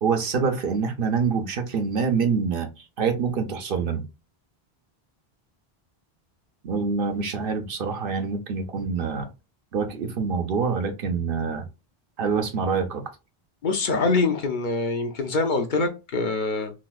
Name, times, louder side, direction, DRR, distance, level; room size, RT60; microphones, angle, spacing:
voice 1, 0.0-4.0 6.6-9.3 9.7-11.7 12.2-13.0, right 5 dB, 65° right, 0.8 m, -26 dB
voice 2, 13.6-16.7, left 3 dB, 55° left, 0.7 m, -24 dB
4.0 x 2.2 x 2.3 m
omnidirectional pair, 1.1 m